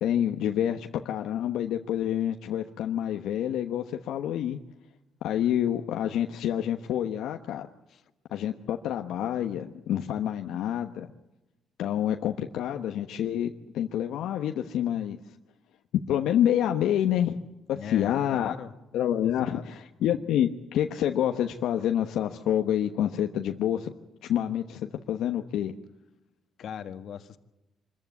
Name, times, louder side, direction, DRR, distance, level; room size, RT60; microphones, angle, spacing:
voice 1, 0.0-4.6 5.2-7.7 8.3-11.1 11.8-15.2 15.9-17.4 17.7-18.5 18.9-23.9 24.3-25.7, left 10 dB, 85° left, 5 dB, 1.1 m, -27 dB
voice 2, 17.7-18.7 19.2-19.6 26.6-27.4, left 8 dB, 65° left, 10 dB, 1.6 m, -40 dB
25.0 x 15.0 x 9.5 m, 0.97 s
cardioid pair, 90°, 0 cm